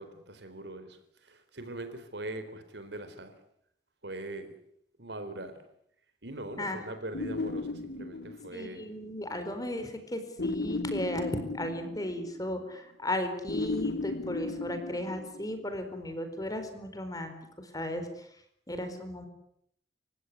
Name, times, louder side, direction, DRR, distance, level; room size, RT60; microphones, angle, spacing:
voice 1, 0.0-3.3 4.0-4.5 5.0-5.6 6.2-8.9, right 1 dB, 75° right, 9 dB, 4.2 m, -41 dB
sound 1, 7.1-8.8 10.4-12.5 13.5-15.6, left 2 dB, 70° left, 1.2 m, -35 dB
voice 2, 8.5-18.3 18.7-19.3, left 1 dB, 20° left, 7 dB, 4.3 m, -35 dB
29.0 x 16.0 x 9.9 m, 0.73 s
head